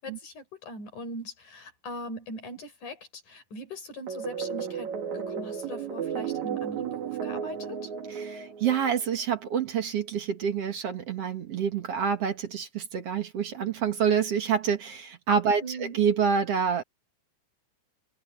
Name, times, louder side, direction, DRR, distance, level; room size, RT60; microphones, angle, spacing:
voice 1, 0.0-7.9 15.6-16.0, equal, 85° left, 7.0 m, -41 dB
sound 1, 4.1-9.2, right 7 dB, 70° right, 3.2 m, -34 dB
voice 2, 8.2-16.8, right 7 dB, 55° right, 2.6 m, -27 dB
omnidirectional pair, 3.4 m